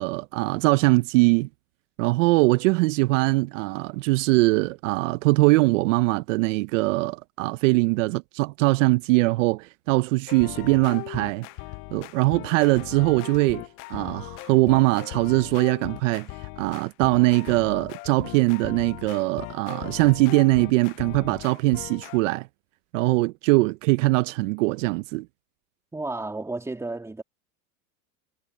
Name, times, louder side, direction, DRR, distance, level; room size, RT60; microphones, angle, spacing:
voice 1, 0.0-1.5 2.0-11.5 11.9-22.5 22.9-25.3, right 22 dB, 60° right, 0.7 m, -22 dB
sound 1, 10.3-22.2, left 22 dB, 30° left, 0.4 m, -39 dB
voice 2, 25.9-27.2, right 2 dB, 5° right, 2.7 m, -32 dB
supercardioid pair, 140°, 44 cm